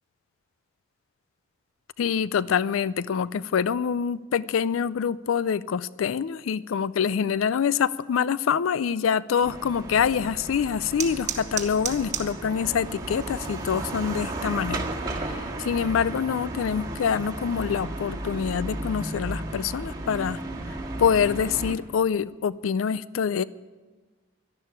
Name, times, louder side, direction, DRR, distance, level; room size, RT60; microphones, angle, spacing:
voice 1, 2.0-20.4 20.7-23.4, left 7 dB, 80° left, 19 dB, 0.4 m, -26 dB
sound 1, 9.4-21.7, right 2 dB, 20° right, 1.7 m, -34 dB
sound 2, 10.0-21.1, right 8 dB, 35° right, 1.3 m, -41 dB
12.0 x 11.0 x 9.4 m, 1.3 s
head